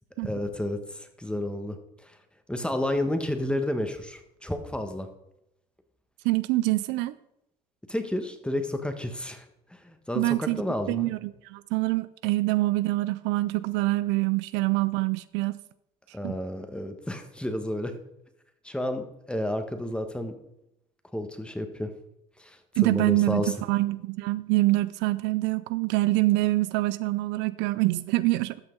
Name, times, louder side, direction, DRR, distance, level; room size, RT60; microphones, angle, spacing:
voice 1, 0.2-1.8 2.0-2.2 2.5-5.1 7.9-9.4 9.7-11.1 16.1-17.9 18.6-20.3 21.1-21.9 22.4-23.5, left 1 dB, 5° left, 1.4 m, -31 dB
voice 2, 6.2-7.1 10.2-10.6 10.9-15.6 16.2-16.4 22.8-28.6, right 19 dB, 75° right, 0.4 m, -25 dB
12.5 x 5.9 x 3.8 m
supercardioid pair, 80°, 19 cm